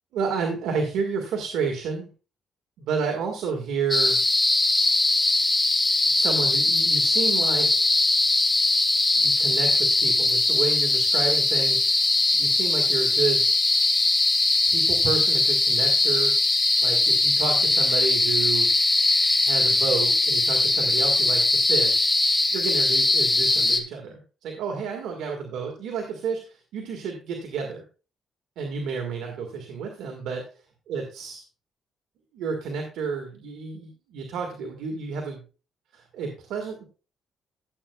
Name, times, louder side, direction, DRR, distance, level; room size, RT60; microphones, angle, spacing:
voice 1, 0.1-2.1 2.8-4.2 6.1-7.9 9.2-12.0 12.3-13.4 14.7-16.3 16.8-18.7 19.5-22.0 22.5-27.8 28.6-30.4 30.9-31.4 32.3-35.4 35.9-36.8, right 5 dB, 85° right, 2 dB, 1.6 m, -30 dB
sound 1, 3.9-23.8, left 2 dB, 15° left, 1.4 m, -21 dB
14.0 x 7.9 x 2.3 m, 0.34 s
cardioid pair, 90°, 0 cm